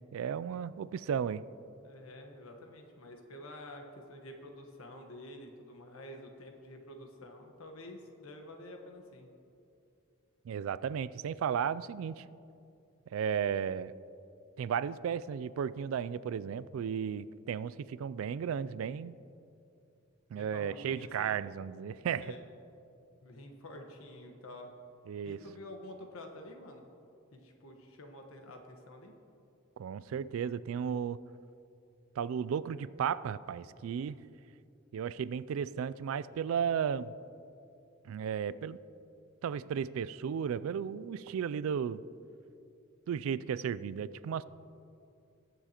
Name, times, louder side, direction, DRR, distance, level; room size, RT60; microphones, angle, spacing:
voice 1, 0.1-1.4 10.4-12.2 13.1-13.9 14.6-19.1 20.3-22.3 25.1-25.4 29.8-31.2 32.2-34.2 34.9-37.1 38.0-38.8 39.4-42.0 43.1-44.4, right 7 dB, 75° right, 18 dB, 0.3 m, -34 dB
voice 2, 1.8-9.3 20.3-21.4 22.1-22.4 23.2-24.7 25.2-26.9 27.3-29.2, left 1 dB, 85° left, 3 dB, 1.3 m, -49 dB
20.0 x 7.1 x 2.9 m, 2.6 s
head